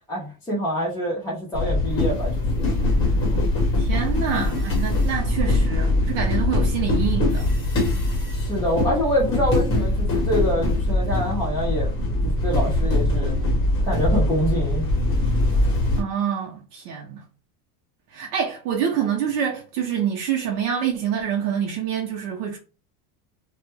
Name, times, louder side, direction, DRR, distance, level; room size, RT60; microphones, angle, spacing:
voice 1, 0.1-2.8 8.3-11.9 12.2-13.3 13.8-14.8, equal, 10° left, 0.6 m, -26 dB
sound 1, 1.5-16.0, left 1 dB, 25° left, 1.0 m, -22 dB
voice 2, 3.8-7.5 16.0-17.2 18.1-22.6, right 8 dB, 85° right, 0.7 m, -26 dB
2.2 x 2.1 x 3.1 m
supercardioid pair, 140°, 45 cm